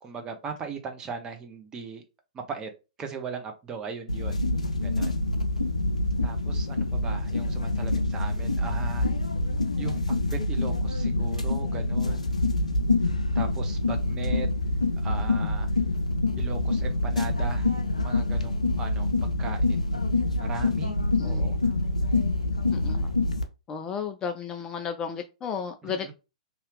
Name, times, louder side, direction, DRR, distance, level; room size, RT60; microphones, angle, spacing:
voice 1, 0.0-2.0 2.3-2.7 3.0-4.4 4.8-5.1 6.2-9.1 9.8-10.0 10.3-12.3 13.3-14.5 15.0-15.7 16.4-17.7 18.0-19.8 20.4-20.9 21.2-21.6 25.9-26.1, right 5 dB, 20° right, 0.6 m, -38 dB
sound 1, 4.1-23.4, left 2 dB, 85° left, 0.5 m, -26 dB
voice 2, 22.7-23.1 23.7-26.1, left 6 dB, 20° left, 0.3 m, -33 dB
2.7 x 2.4 x 3.3 m
figure-of-eight pair, 110°, 4 cm